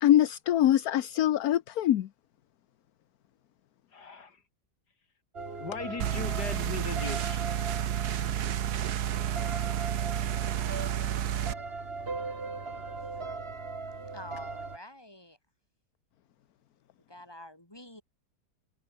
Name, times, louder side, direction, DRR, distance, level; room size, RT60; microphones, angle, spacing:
voice 1, 0.0-2.1, left 12 dB, 70° left, 1.3 m, -23 dB
voice 2, 3.9-4.4 5.6-7.5, left 5 dB, 85° left, 3.2 m, -38 dB
sound 1, 5.3-14.8, right 3 dB, 35° right, 2.5 m, -39 dB
sound 2, 6.0-11.5, right 10 dB, 75° right, 1.5 m, -31 dB
voice 3, 14.1-15.4 17.1-18.0, left 1 dB, 15° left, 5.0 m, -47 dB
omnidirectional pair, 1.7 m